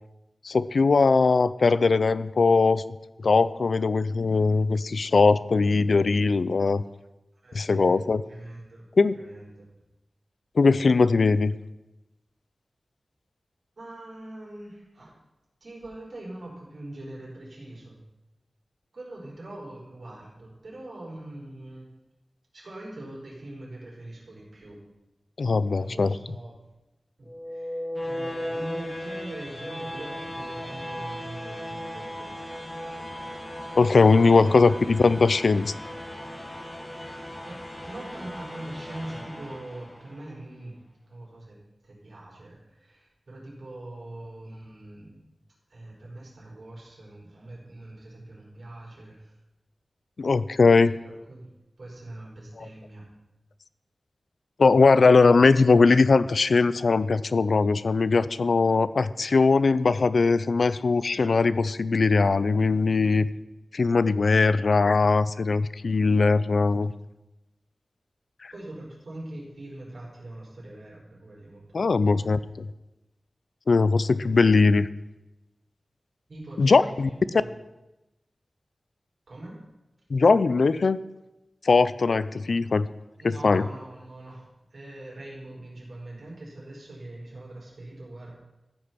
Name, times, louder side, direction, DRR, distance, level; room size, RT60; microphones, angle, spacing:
voice 1, 0.4-2.8 3.2-6.8 7.5-8.2 9.0-9.1 10.6-11.5 25.4-26.2 33.8-35.7 50.2-50.9 54.6-63.3 63.7-66.9 68.4-68.5 71.7-72.4 73.7-74.9 76.6-77.1 80.1-81.0 81.6-82.9 83.2-83.6, left 4 dB, 70° left, 16 dB, 0.4 m, -20 dB
voice 2, 7.3-8.0 8.3-8.9 9.1-9.7 13.8-15.1 15.6-18.0 18.9-21.9 22.5-24.8 25.7-26.6 27.2-32.4 34.3-34.6 37.4-40.7 41.0-41.6 41.8-45.2 45.7-49.4 50.7-51.5 51.8-53.0 68.5-71.9 72.1-72.5 76.3-77.5 79.3-79.6 83.2-84.4 84.7-88.4, right 1 dB, 70° right, -4 dB, 4.7 m, -42 dB
sound 1, 27.2-40.2, left 1 dB, 25° left, 1.4 m, -37 dB
14.5 x 6.7 x 6.0 m, 0.98 s
wide cardioid pair, 100°, 0 cm